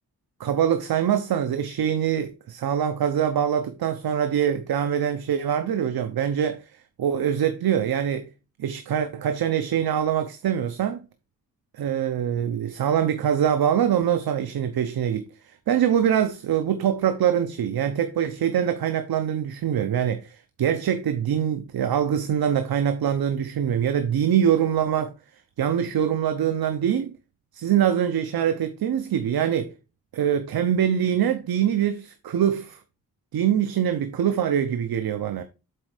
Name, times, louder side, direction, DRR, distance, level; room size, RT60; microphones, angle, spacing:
voice 1, 0.4-6.7 7.0-8.3 8.6-11.0 11.7-25.1 25.6-27.1 27.5-29.7 30.1-32.8 33.3-35.4, right 9 dB, 80° right, 0.8 m, -24 dB
7.8 x 4.4 x 4.9 m
wide cardioid pair, 110°, 36 cm